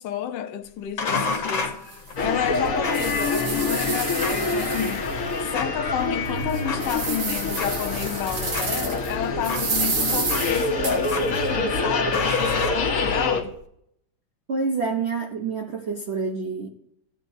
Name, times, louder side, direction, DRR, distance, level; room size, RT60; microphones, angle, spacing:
voice 1, 0.0-1.7 2.2-5.1 5.4-13.5, left 10 dB, 70° left, 1.2 m, -30 dB
sound 1, 1.0-13.5, left 4 dB, 90° left, 2.0 m, -34 dB
sound 2, 1.3-1.4 1.9-2.0 2.5-5.4 5.8-5.9 6.4-9.1 9.4-11.4, right 4 dB, 90° right, 2.4 m, -30 dB
sound 3, 2.2-13.4, left 3 dB, 50° left, 1.5 m, -26 dB
voice 2, 14.5-16.7, right 4 dB, 55° right, 0.7 m, -27 dB
15.5 x 8.5 x 2.7 m
omnidirectional pair, 2.1 m